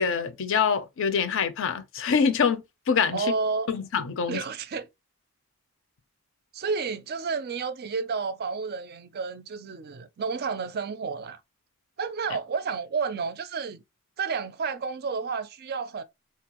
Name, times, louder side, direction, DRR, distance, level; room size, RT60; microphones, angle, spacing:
voice 1, 0.0-3.3 3.7-4.4, left 6 dB, 60° left, 0.5 m, -25 dB
voice 2, 3.1-3.7 4.3-4.9 6.5-11.4 12.0-13.8 14.2-16.0, right 5 dB, 45° right, 0.4 m, -31 dB
4.2 x 2.4 x 2.9 m
head